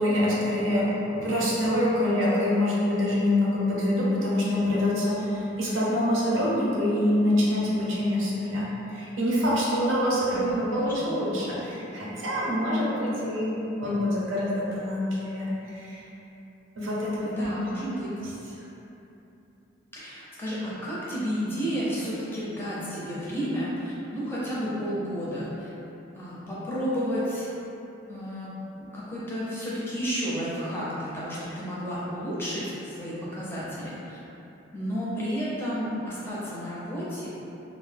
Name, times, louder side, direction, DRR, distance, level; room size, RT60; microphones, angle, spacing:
voice 1, 0.0-13.5 13.8-16.0 16.8-17.5, left 1 dB, 75° right, -6 dB, 0.6 m, -25 dB
voice 2, 10.3-10.9 17.2-18.1 19.9-25.7 26.1-27.5 28.1-28.5 28.8-34.2 34.7-37.3, equal, 10° left, -9 dB, 0.5 m, -32 dB
2.4 x 2.1 x 3.2 m, 2.9 s
head